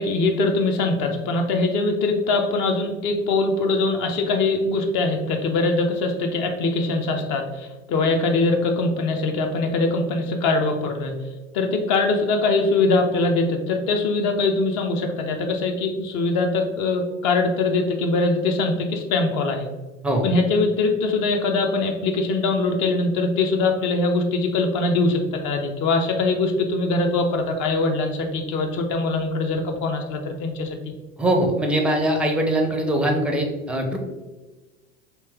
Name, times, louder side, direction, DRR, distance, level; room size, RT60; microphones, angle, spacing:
voice 1, 0.0-11.1 11.5-19.7 20.2-30.9, left 3 dB, 45° left, 4 dB, 0.7 m, -22 dB
voice 2, 31.2-34.0, right 1 dB, 5° right, 2 dB, 0.5 m, -22 dB
3.1 x 2.9 x 3.4 m, 1.2 s
hypercardioid pair, 80°, 40 cm